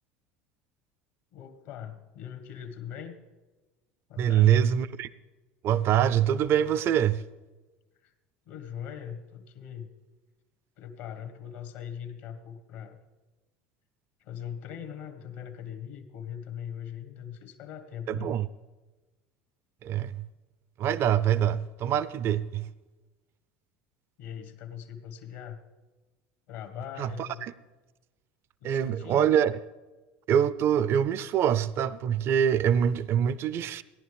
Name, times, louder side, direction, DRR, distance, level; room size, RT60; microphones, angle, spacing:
voice 1, 1.3-3.2 4.1-4.7 8.0-8.1 8.5-9.9 10.8-13.0 14.2-18.3 24.2-25.6 26.5-27.5 28.6-29.2, left 9 dB, 75° left, 1.4 m, -41 dB
voice 2, 4.2-5.1 5.6-7.2 18.1-18.5 19.8-20.2 20.8-22.7 27.0-27.5 28.6-29.6 30.3-33.8, right 9 dB, 50° right, 0.4 m, -24 dB
17.5 x 10.5 x 3.5 m
hypercardioid pair, 85°, 5 cm